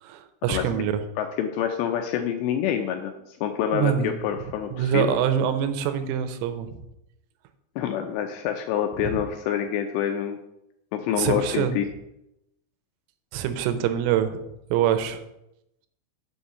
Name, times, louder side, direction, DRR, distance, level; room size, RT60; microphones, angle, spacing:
voice 1, 0.0-1.0 3.7-4.2 4.7-6.7 9.0-9.2 11.2-11.8 13.3-14.4 14.7-15.2, right 9 dB, 90° right, 9 dB, 3.3 m, -25 dB
voice 2, 1.2-3.1 3.4-5.2 7.8-10.4 10.9-11.9, left 9 dB, 85° left, 5 dB, 2.5 m, -27 dB
7.3 x 5.5 x 6.7 m, 0.84 s
omnidirectional pair, 5.6 m